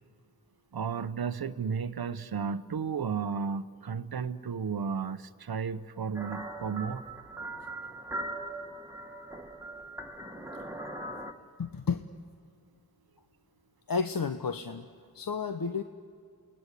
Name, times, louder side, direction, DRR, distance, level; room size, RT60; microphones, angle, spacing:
voice 1, 0.7-7.0, right 6 dB, 80° right, 13 dB, 0.9 m, -33 dB
sound 1, 6.1-11.3, right 2 dB, 10° right, 1.8 m, -40 dB
voice 2, 11.6-12.0 13.9-14.9 15.1-15.8, left 5 dB, 65° left, 8 dB, 1.0 m, -31 dB
29.0 x 19.5 x 8.3 m, 2.3 s
cardioid pair, 40°, 37 cm